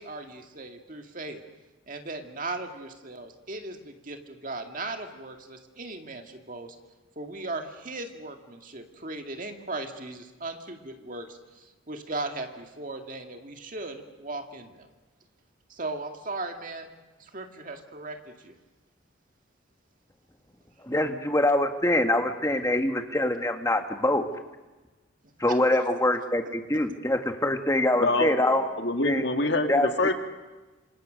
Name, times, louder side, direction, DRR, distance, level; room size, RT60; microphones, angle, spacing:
voice 1, 0.0-1.4 1.9-6.8 7.2-14.9 15.7-18.6 25.5-25.6, right 2 dB, 40° right, 5 dB, 2.1 m, -37 dB
voice 2, 20.8-24.3 25.4-28.7 29.0-29.3 29.7-29.9, left 1 dB, 15° left, 6 dB, 1.6 m, -24 dB
voice 3, 28.0-28.4 28.8-30.1, left 2 dB, 55° left, 6 dB, 2.0 m, -25 dB
27.5 x 26.5 x 6.5 m, 1.2 s
head